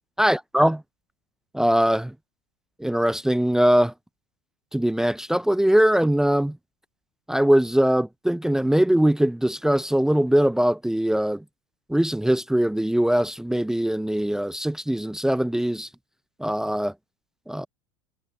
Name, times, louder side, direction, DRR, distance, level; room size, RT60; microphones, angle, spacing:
voice 1, 0.2-0.8 1.5-2.1 2.8-3.9 4.7-6.6 7.3-11.4 11.9-15.9 16.4-16.9 17.5-17.7, equal, 5° right, 0.7 m, -21 dB
figure-of-eight pair, 75°, 17 cm